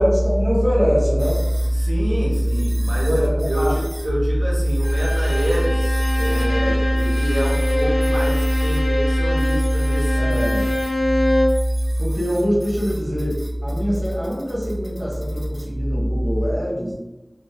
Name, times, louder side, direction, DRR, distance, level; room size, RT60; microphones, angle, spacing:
voice 1, 0.0-1.4 3.0-3.8 10.2-10.7 12.0-16.9, equal, 5° right, -7 dB, 0.9 m, -24 dB
sound 1, 1.2-1.7 2.3-4.1 4.6-6.5 7.0-8.8 9.4-11.0 11.5-15.7, equal, 25° right, 1.4 m, -42 dB
voice 2, 1.7-10.4, equal, 75° right, -4 dB, 0.5 m, -20 dB
Bowed string instrument, 4.8-11.7, left 1 dB, 80° left, 0.3 m, -24 dB
2.7 x 2.0 x 2.7 m, 1.0 s
wide cardioid pair, 55°, 0 cm